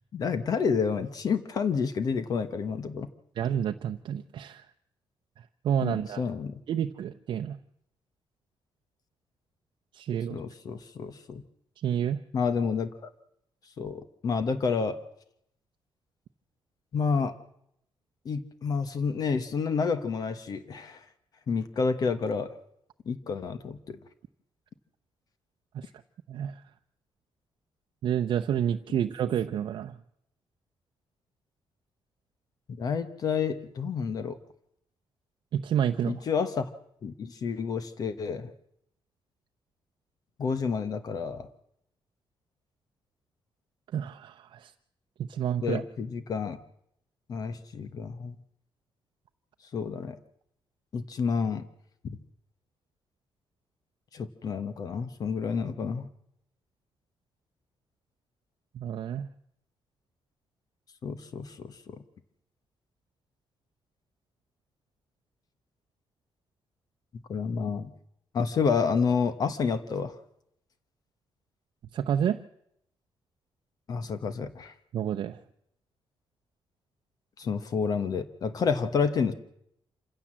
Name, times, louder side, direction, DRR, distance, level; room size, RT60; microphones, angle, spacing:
voice 1, 0.1-3.1 5.8-6.6 10.3-11.4 12.3-13.1 13.8-15.0 16.9-17.3 18.2-21.0 21.5-22.5 23.1-24.0 32.7-34.4 36.0-36.7 37.0-38.5 40.4-41.5 45.6-46.6 47.3-48.4 49.7-50.2 50.9-51.6 52.0-52.2 54.1-56.1 61.0-62.0 67.3-67.9 68.3-70.1 73.9-74.7 77.4-79.3, left 5 dB, 45° left, 11 dB, 1.3 m, -29 dB
voice 2, 3.4-4.6 5.6-6.3 6.7-7.6 9.9-10.4 11.8-12.2 25.7-25.9 26.3-26.6 28.0-30.0 35.5-36.2 43.9-44.7 45.2-45.8 58.7-59.3 71.9-72.4 74.9-75.4, right 9 dB, 60° right, 5 dB, 0.8 m, -29 dB
27.0 x 16.0 x 7.5 m, 0.76 s
wide cardioid pair, 170°, 9 cm